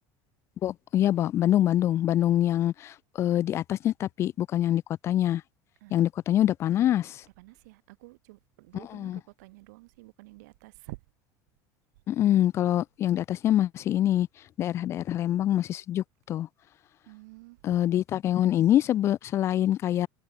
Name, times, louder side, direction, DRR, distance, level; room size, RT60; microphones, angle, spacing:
voice 1, 0.6-5.4 5.9-7.2 8.7-9.2 12.1-14.3 14.6-16.5 17.6-20.1, left 12 dB, 30° left, 0.5 m, -25 dB
voice 2, 7.4-11.0 17.1-17.6, right 23 dB, 90° right, 3.4 m, -49 dB
cardioid pair, 170°, 9 cm